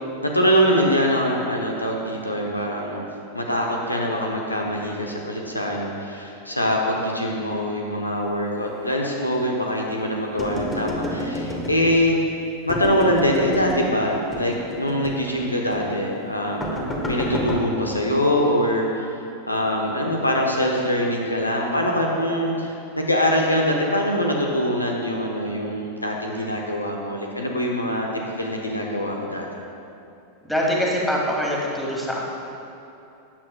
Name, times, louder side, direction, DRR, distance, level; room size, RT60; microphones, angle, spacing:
voice 1, 0.2-3.1 3.3-12.2 12.7-19.1 19.5-28.1 28.4-29.5, equal, 85° left, 0 dB, 1.0 m, -23 dB
sound 1, 10.4-12.1 12.7-13.9 14.3-15.3 15.7-15.9 16.6-17.6, left 1 dB, 20° left, 1.4 m, -29 dB
voice 2, 30.4-32.2, equal, ahead, -4 dB, 1.9 m, -23 dB
14.5 x 8.9 x 2.3 m, 2.7 s
figure-of-eight pair, 90°, 0 cm